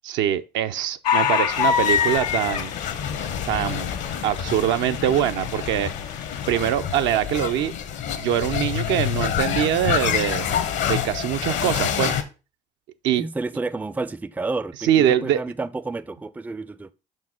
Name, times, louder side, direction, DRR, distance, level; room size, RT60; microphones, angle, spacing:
voice 1, 0.0-2.7 3.5-3.9 4.2-5.9 6.5-7.7 8.2-10.5 10.9-12.2 13.0-13.2 14.8-15.4, right 11 dB, 65° right, 0.6 m, -23 dB
sound 1, 1.0-6.7, left 8 dB, 90° left, 0.6 m, -26 dB
sound 2, 1.5-12.2, left 9 dB, 65° left, 1.0 m, -28 dB
voice 2, 13.1-16.9, right 3 dB, 10° right, 0.4 m, -30 dB
5.9 x 4.6 x 4.3 m
hypercardioid pair, 55°, 20 cm